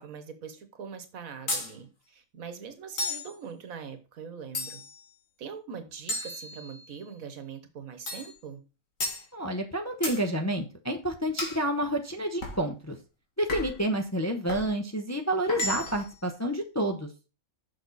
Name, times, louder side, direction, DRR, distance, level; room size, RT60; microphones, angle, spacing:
voice 1, 0.0-4.8 5.4-8.6, right 6 dB, 85° right, 1.5 m, -42 dB
sound 1, 1.5-1.7 3.0-3.3 4.5-5.0 6.1-7.0 8.1-8.3 9.0-9.2 10.0-10.2 11.4-11.6 12.4-12.6 13.5-13.8 14.5-14.7 15.5-16.1, left 2 dB, 70° left, 2.2 m, -33 dB
voice 2, 9.3-13.0 13.4-17.1, right 1 dB, 20° left, 0.5 m, -29 dB
6.6 x 6.0 x 4.0 m
omnidirectional pair, 1.4 m